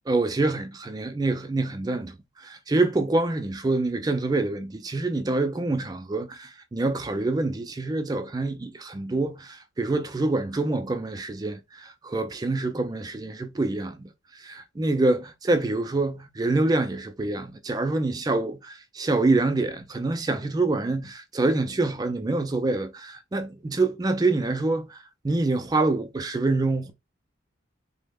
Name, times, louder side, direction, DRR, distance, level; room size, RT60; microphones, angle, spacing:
voice 1, 0.1-26.9, right 2 dB, 20° right, 0.3 m, -26 dB
3.1 x 2.0 x 3.4 m
head